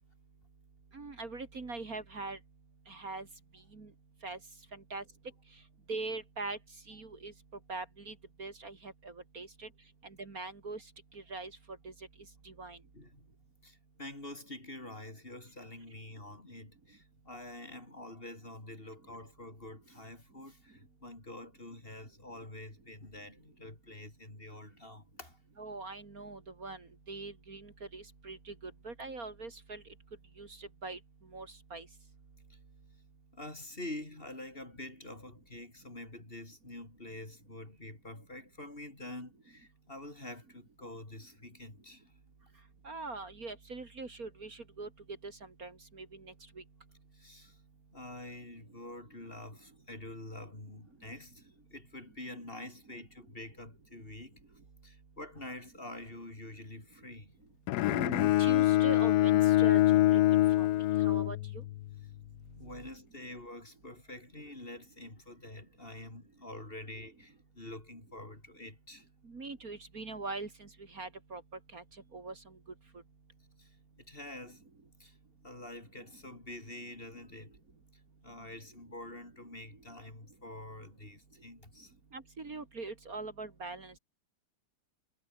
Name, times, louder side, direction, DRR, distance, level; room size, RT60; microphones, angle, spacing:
voice 1, 0.9-2.4 2.9-3.3 3.7-3.9 4.2-4.4 4.7-5.0 5.9-6.6 6.9-7.3 7.7-9.7 10.0-10.8 11.1-11.5 11.8-11.9 12.4-12.8 25.6-29.8 30.4-31.0 31.3-31.9 42.8-44.9 45.2-46.6 57.9-60.2 60.6-61.6 62.6-62.8 69.2-71.4 71.7-71.8 72.1-72.6 82.1-83.9, right 3 dB, 50° right, 3.1 m, -42 dB
voice 2, 12.9-13.3 13.6-25.4 32.5-32.6 33.3-42.1 47.1-47.6 47.9-54.4 54.8-57.3 62.6-69.1 73.6-74.6 75.0-75.2 75.4-77.6 78.2-81.9, left 1 dB, 30° left, 4.7 m, -47 dB
Bowed string instrument, 57.7-61.9, left 15 dB, 70° left, 1.0 m, -25 dB
omnidirectional pair, 2.0 m